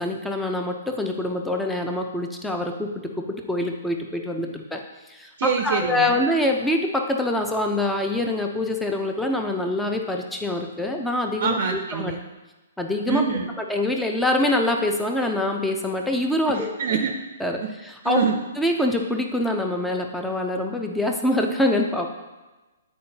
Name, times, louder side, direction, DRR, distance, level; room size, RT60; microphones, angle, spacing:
voice 1, 0.0-4.8 5.1-12.1 12.8-13.3 13.7-16.7 17.4-18.2 18.6-22.1, left 1 dB, 5° left, 2 dB, 0.6 m, -25 dB
voice 2, 5.4-6.2 11.4-12.2 13.1-13.5 16.5-17.1 17.6-17.7 18.0-18.4, right 6 dB, 55° right, 4 dB, 0.5 m, -25 dB
8.5 x 4.4 x 2.9 m, 1.2 s
hypercardioid pair, 130°, 0 cm